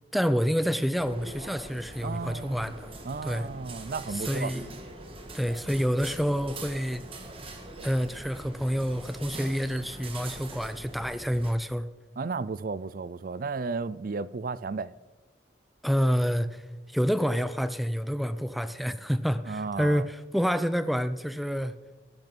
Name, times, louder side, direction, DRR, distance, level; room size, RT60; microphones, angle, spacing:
voice 1, 0.1-2.9 3.2-3.5 4.1-4.6 5.3-7.0 7.8-11.9 15.8-16.6 16.9-21.8, equal, ahead, 0.5 m, -28 dB
sound 1, 0.9-11.5, right 2 dB, 30° right, 2.0 m, -43 dB
voice 2, 2.0-2.7 3.0-4.5 12.2-14.9 19.5-20.1, right 4 dB, 50° right, 0.4 m, -34 dB
18.0 x 11.0 x 5.4 m
head